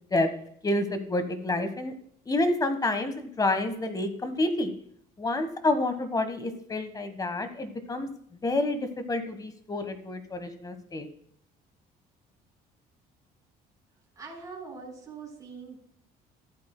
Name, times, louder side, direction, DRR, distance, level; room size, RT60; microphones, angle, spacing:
voice 1, 0.6-1.9 2.3-4.7 5.2-8.1 8.4-11.1, left 2 dB, 20° left, 9 dB, 1.3 m, -28 dB
voice 2, 14.2-15.8, right 4 dB, 20° right, -3 dB, 4.0 m, -42 dB
14.5 x 8.8 x 2.2 m, 0.65 s
cardioid pair, 110°, 17 cm